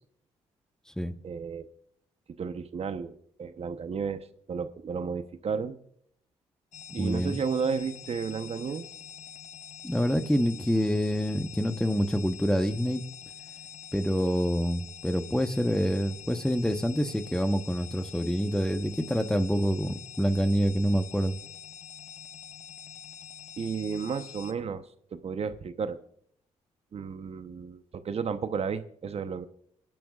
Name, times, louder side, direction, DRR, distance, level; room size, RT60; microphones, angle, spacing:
voice 1, 1.2-1.7 2.4-5.8 6.9-8.9 23.6-24.8 25.1-26.0 26.9-29.4, right 6 dB, 50° right, 10 dB, 0.9 m, -33 dB
sound 1, 6.7-24.5, left 8 dB, 65° left, 1.1 m, -46 dB
voice 2, 7.0-7.4 9.8-13.0 13.9-21.4, equal, 5° left, 9 dB, 1.0 m, -27 dB
27.5 x 10.5 x 2.4 m, 0.66 s
supercardioid pair, 65°, 13 cm